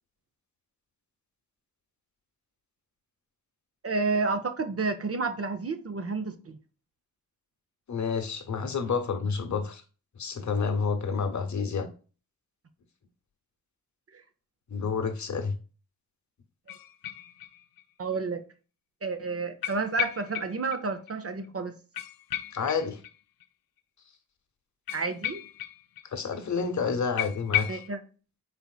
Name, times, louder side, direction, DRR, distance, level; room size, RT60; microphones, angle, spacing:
voice 1, 3.8-6.6 18.0-18.4 19.0-21.8 24.9-25.4 27.7-28.0, right 4 dB, 40° right, 0.7 m, -30 dB
voice 2, 7.9-9.8 10.2-11.9 14.7-15.6 22.5-23.0 26.1-27.8, left 5 dB, 50° left, 1.1 m, -29 dB
sound 1, 16.7-17.8 18.1-18.2 19.6-20.8 21.1-21.2 21.4-21.5 21.9-23.4 24.9-26.1 26.3-26.4 26.7-26.8 27.2-27.9, left 12 dB, 65° left, 0.5 m, -34 dB
4.2 x 3.9 x 2.3 m
supercardioid pair, 45°, 37 cm